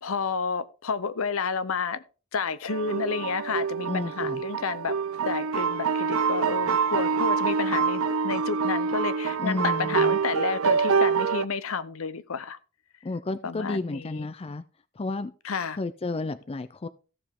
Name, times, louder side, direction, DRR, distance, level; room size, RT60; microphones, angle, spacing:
voice 1, 0.0-2.0 2.3-5.0 5.3-12.6 13.4-14.3 15.4-15.8, left 5 dB, 70° left, 0.7 m, -30 dB
sound 1, 2.7-11.4, right 5 dB, 70° right, 0.5 m, -26 dB
voice 2, 3.9-4.4 9.4-10.2 13.0-14.6 15.0-15.3 15.8-16.9, left 2 dB, 25° left, 0.4 m, -31 dB
15.0 x 6.9 x 3.6 m
head